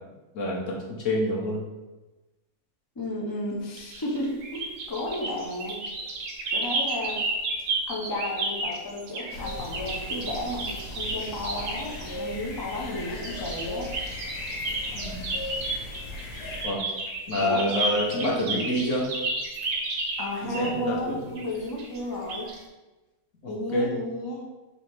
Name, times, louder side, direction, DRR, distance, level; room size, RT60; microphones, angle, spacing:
voice 1, 0.3-1.6 14.9-15.3 16.6-16.8 17.3-19.1 20.4-21.2 23.4-23.9, left 1 dB, 55° left, -2 dB, 1.2 m, -27 dB
voice 2, 3.0-5.8 6.5-7.2 7.9-13.9 14.9-15.0 17.3-17.7 18.1-18.4 20.2-22.5 23.5-24.5, left 1 dB, 35° left, -2 dB, 0.3 m, -33 dB
sound 1, 3.8-12.1 13.2-20.8 21.4-22.0 22.3-22.6, right 2 dB, 65° right, 1.0 m, -32 dB
sound 2, 9.3-16.7, left 1 dB, 85° left, 1.7 m, -37 dB
4.0 x 2.8 x 4.6 m, 1.1 s
omnidirectional pair, 1.6 m